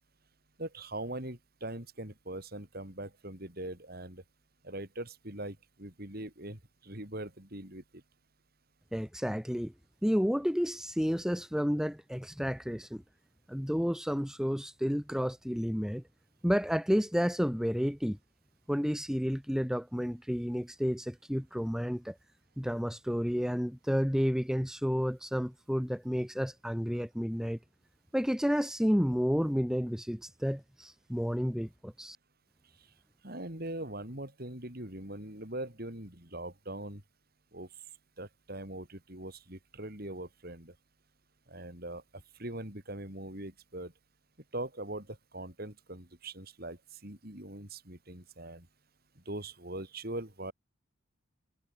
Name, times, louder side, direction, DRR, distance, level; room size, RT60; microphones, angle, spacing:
voice 1, 0.6-4.2 4.6-8.0 33.2-37.0 37.5-37.7 38.2-40.7 41.5-42.0 42.4-43.9 44.5-48.7 49.3-50.5, right 1 dB, 45° right, 4.6 m, -41 dB
voice 2, 8.9-9.7 10.0-13.0 13.5-16.0 16.4-18.2 18.7-22.2 22.6-27.6 28.1-32.2, equal, 5° right, 2.1 m, -31 dB
head